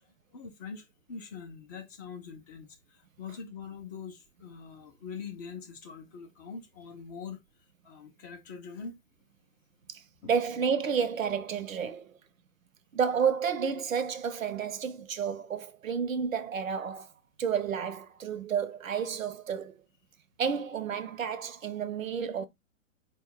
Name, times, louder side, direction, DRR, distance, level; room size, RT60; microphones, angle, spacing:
voice 1, 0.3-2.8 3.2-7.4 7.8-9.0 10.2-10.3, left 5 dB, 15° left, 0.3 m, -43 dB
voice 2, 9.9-12.1 12.9-17.1 17.4-19.7 20.4-22.5, right 7 dB, 85° right, 0.7 m, -31 dB
3.9 x 2.2 x 3.6 m
figure-of-eight pair, 115°, 39 cm